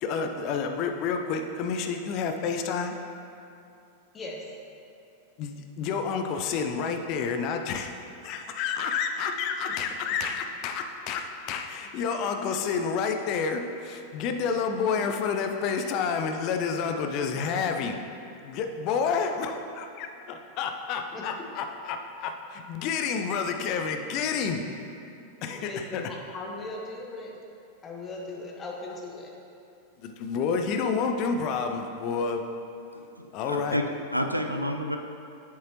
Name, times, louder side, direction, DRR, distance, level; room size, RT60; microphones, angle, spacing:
voice 1, 0.0-3.0 5.4-7.9 8.2-18.0 18.4-24.6 25.4-26.1 30.0-32.4 33.3-33.8, left 5 dB, 40° left, 5 dB, 0.6 m, -29 dB
voice 2, 4.1-4.4 21.1-21.2 25.6-27.3 27.8-29.3, left 2 dB, 25° left, -1 dB, 1.1 m, -38 dB
voice 3, 32.9-33.8 34.1-35.0, equal, 90° right, 4 dB, 0.4 m, -30 dB
7.5 x 7.4 x 3.0 m, 2.6 s
figure-of-eight pair, 90°, 0 cm